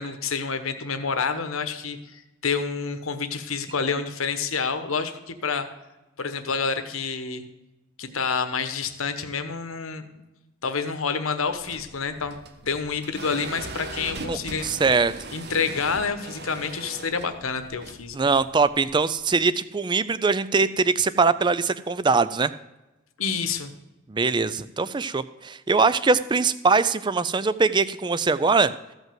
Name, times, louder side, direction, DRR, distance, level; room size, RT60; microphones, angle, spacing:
voice 1, 0.0-5.7 6.2-7.4 8.0-10.0 10.6-12.4 12.7-14.7 15.3-18.2 23.2-23.7, left 5 dB, 80° left, 9 dB, 1.2 m, -28 dB
sound 1, 11.5-19.4, right 2 dB, 50° right, 1.1 m, -40 dB
voice 2, 14.3-15.1 18.1-22.5 24.1-28.7, right 4 dB, 20° right, 15 dB, 0.4 m, -22 dB
14.5 x 5.4 x 7.6 m, 1.0 s
head